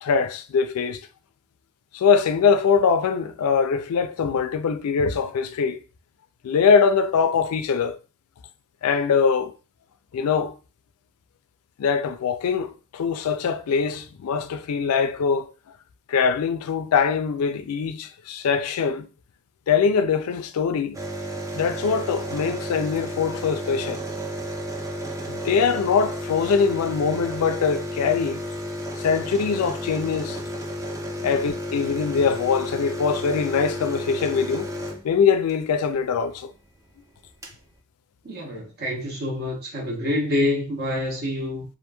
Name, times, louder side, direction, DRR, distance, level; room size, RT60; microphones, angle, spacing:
voice 1, 0.0-1.0 1.9-5.8 6.4-8.0 8.8-9.5 10.1-10.5 11.8-15.5 16.1-19.1 19.7-21.0 21.5-24.0 25.3-28.4 29.0-30.4 31.2-34.7 35.0-36.5, left 6 dB, 80° left, 0.4 m, -22 dB
sound 1, 20.9-35.6 36.9-37.0 37.1-37.6, equal, 15° right, 0.4 m, -32 dB
voice 2, 38.2-41.6, left 1 dB, 45° right, 0.9 m, -27 dB
2.9 x 2.5 x 2.2 m
head